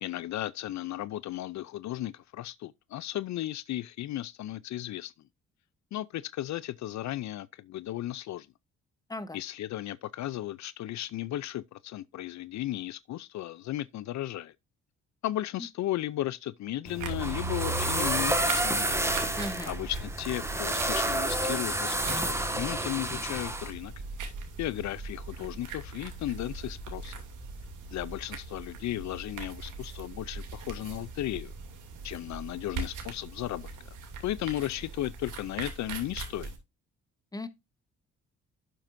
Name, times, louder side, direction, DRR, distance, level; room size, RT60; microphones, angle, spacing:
voice 1, 0.0-5.1 5.9-8.5 9.3-14.5 15.2-18.9 19.7-23.9 24.6-27.1 27.9-31.5 32.0-33.7 34.2-36.5, left 14 dB, 65° left, 0.5 m, -35 dB
sound 1, 16.9-23.7, right 1 dB, 10° right, 1.6 m, -30 dB
sound 2, 17.0-36.6, right 3 dB, 80° right, 2.7 m, -40 dB
voice 2, 19.4-19.7 37.3-37.5, left 2 dB, 10° left, 1.1 m, -36 dB
11.5 x 7.5 x 2.6 m
cardioid pair, 90°, 30 cm